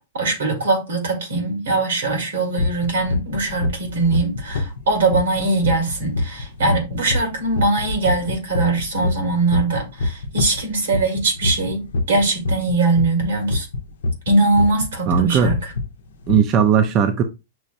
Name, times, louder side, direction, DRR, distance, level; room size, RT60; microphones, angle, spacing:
voice 1, 0.1-13.7 14.3-15.7, right 3 dB, 90° right, 2.0 m, -21 dB
sound 1, 2.6-14.9 15.1-15.8 16.2-16.4, left 2 dB, 85° left, 0.6 m, -24 dB
voice 2, 15.1-15.5 16.3-17.2, right 8 dB, 35° right, 0.4 m, -17 dB
6.0 x 2.2 x 2.6 m
hypercardioid pair, 135°, 0 cm